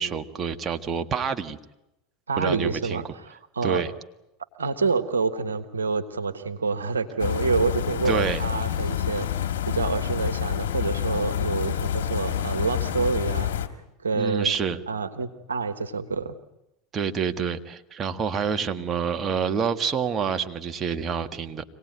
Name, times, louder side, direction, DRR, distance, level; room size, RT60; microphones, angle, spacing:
voice 1, 0.0-1.6 2.4-3.0 3.6-3.9 8.0-8.4 14.1-14.8 16.9-21.6, right 6 dB, 30° right, 8 dB, 1.6 m, -27 dB
voice 2, 2.3-3.8 4.6-13.5 14.0-14.5 14.9-16.4, right 4 dB, 90° right, 10 dB, 1.3 m, -27 dB
sound 1, 7.2-13.7, left 10 dB, 75° left, 1.9 m, -28 dB
25.5 x 18.5 x 9.5 m, 0.90 s
hypercardioid pair, 85°, 0 cm